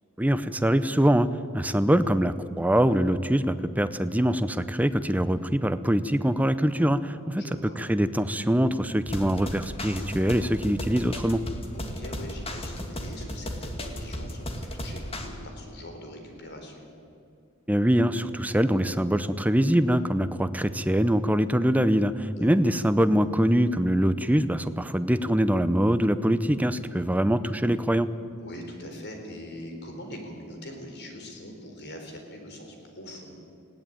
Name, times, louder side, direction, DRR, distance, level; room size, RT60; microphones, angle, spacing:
voice 1, 0.2-1.3 1.5-7.4 7.8-11.4 17.7-28.1, equal, 5° right, 12 dB, 0.6 m, -23 dB
voice 2, 7.4-7.8 11.7-16.9 22.4-22.5 28.4-33.4, left 1 dB, 55° left, 3 dB, 4.1 m, -42 dB
sound 1, 9.1-15.3, left 1 dB, 25° left, 2.1 m, -35 dB
20.0 x 16.5 x 9.1 m, 2.4 s
head